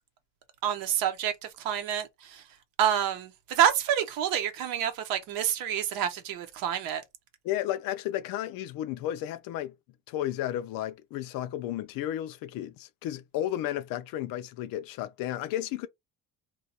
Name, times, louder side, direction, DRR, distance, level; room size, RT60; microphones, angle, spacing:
voice 1, 0.6-1.3 1.6-2.4 2.8-7.0, right 9 dB, 85° right, 0.8 m, -28 dB
voice 2, 7.4-9.7 10.1-15.9, left 12 dB, 75° left, 0.5 m, -33 dB
2.7 x 2.3 x 4.0 m
cardioid pair, 170°, 34 cm